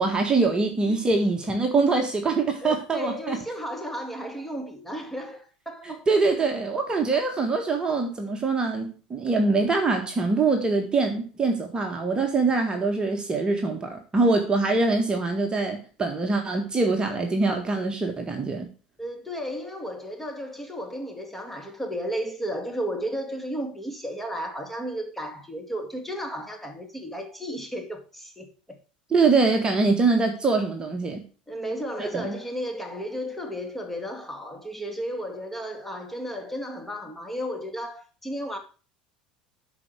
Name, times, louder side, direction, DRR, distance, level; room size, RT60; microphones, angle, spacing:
voice 1, 0.0-3.4 5.8-18.7 29.1-31.2 32.0-32.3, right 3 dB, 20° right, 1.7 m, -24 dB
voice 2, 2.6-6.0 19.0-28.5 31.5-38.6, equal, 5° left, 2.2 m, -33 dB
12.0 x 4.9 x 4.8 m
figure-of-eight pair, 70°, 4 cm